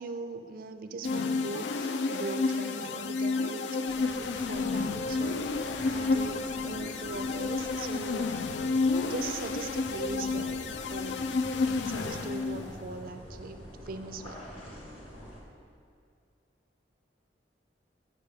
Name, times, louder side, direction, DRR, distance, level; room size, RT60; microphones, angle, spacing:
voice 1, 0.0-8.3 8.9-14.4, right 3 dB, 55° right, 8 dB, 0.4 m, -40 dB
sound 1, 1.0-12.8, left 4 dB, 85° left, 0.4 m, -31 dB
sound 2, 3.8-15.4, equal, 30° left, 1.2 m, -46 dB
7.4 x 6.6 x 3.5 m, 2.3 s
head